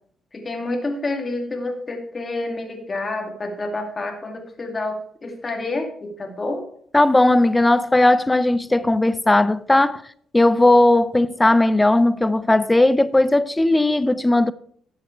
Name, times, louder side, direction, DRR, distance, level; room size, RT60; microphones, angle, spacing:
voice 1, 0.3-6.7, left 2 dB, 30° left, 2.2 m, -28 dB
voice 2, 6.9-10.0 10.3-14.5, left 2 dB, 15° left, 0.5 m, -17 dB
12.0 x 7.5 x 4.5 m
cardioid pair, 90°, 0 cm